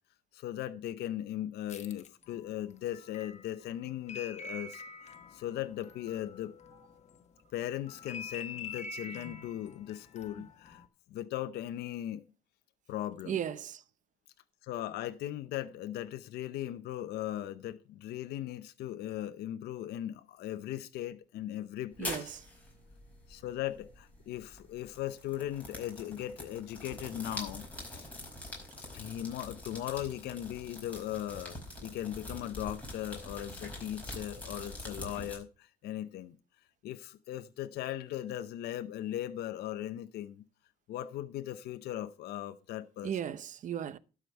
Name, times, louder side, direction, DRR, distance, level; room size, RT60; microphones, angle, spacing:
voice 1, 0.3-6.5 7.5-10.8 11.1-12.2 12.9-13.5 14.6-22.4 23.3-27.6 27.9-28.1 28.9-36.4 36.8-40.4 40.9-43.4, left 12 dB, 75° left, 0.7 m, -38 dB
sound 1, 1.7-7.2 7.6-10.9, left 4 dB, 40° left, 1.3 m, -46 dB
voice 2, 13.3-13.8 22.0-22.4 43.0-44.0, right 9 dB, 50° right, 0.7 m, -36 dB
sound 2, 21.9-35.4, left 1 dB, 10° left, 4.9 m, -45 dB
12.0 x 5.0 x 6.6 m
cardioid pair, 110°, 17 cm